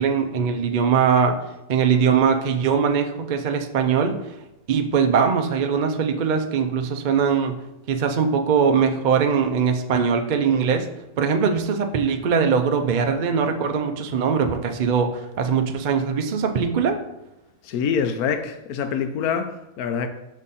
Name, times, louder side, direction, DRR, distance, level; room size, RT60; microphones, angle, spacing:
voice 1, 0.0-1.3 1.7-4.2 4.7-7.6 7.9-10.9 11.2-17.0, right 6 dB, 70° right, 0.4 m, -21 dB
voice 2, 17.6-20.1, left 7 dB, 90° left, 1.1 m, -25 dB
6.2 x 3.7 x 4.1 m
omnidirectional pair, 1.5 m